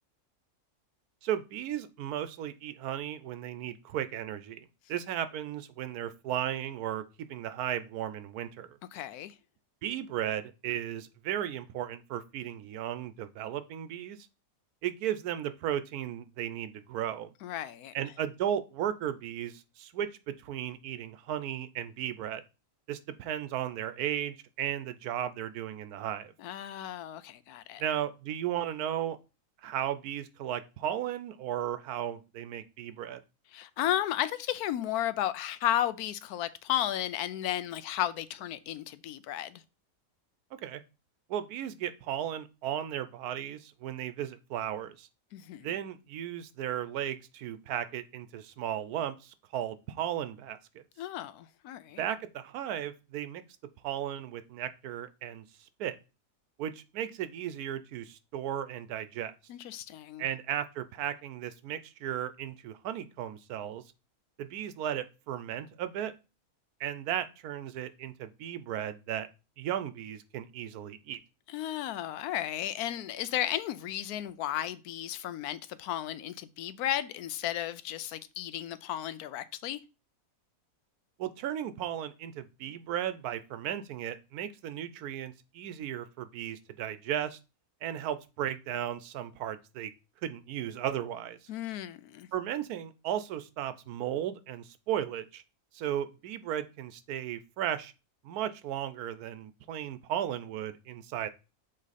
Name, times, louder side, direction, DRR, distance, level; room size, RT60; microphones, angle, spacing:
voice 1, 1.2-7.0 7.3-8.8 9.8-14.2 14.8-17.3 17.9-22.4 22.9-26.3 27.8-29.2 29.6-33.2 40.6-40.8 41.3-45.1 45.6-50.8 52.0-53.4 53.8-55.4 55.8-56.0 56.6-59.3 60.2-63.8 64.4-66.1 66.8-69.3 69.6-71.2 81.2-87.4 87.8-89.9 90.2-91.4 92.3-95.4 95.7-97.9 98.2-101.3, right 10 dB, 85° right, 1.1 m, -35 dB
voice 2, 8.9-9.3 17.4-17.9 26.4-27.8 33.5-39.6 45.3-45.7 51.0-52.0 59.5-60.3 71.5-79.8 91.5-92.3, left 12 dB, 85° left, 1.1 m, -34 dB
7.5 x 3.1 x 4.1 m
omnidirectional pair, 1.6 m